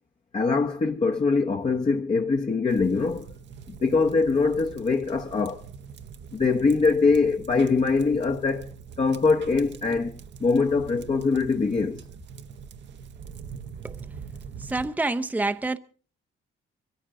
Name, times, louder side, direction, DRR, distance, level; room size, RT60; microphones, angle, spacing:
voice 1, 0.3-3.3 3.7-5.7 6.3-8.7 9.0-12.0, left 4 dB, 35° left, 1.0 m, -23 dB
sound 1, 2.7-14.9, right 6 dB, 65° right, 1.0 m, -43 dB
voice 2, 14.6-15.8, right 2 dB, 10° right, 0.7 m, -27 dB
23.0 x 14.5 x 3.8 m
cardioid pair, 90°, 20 cm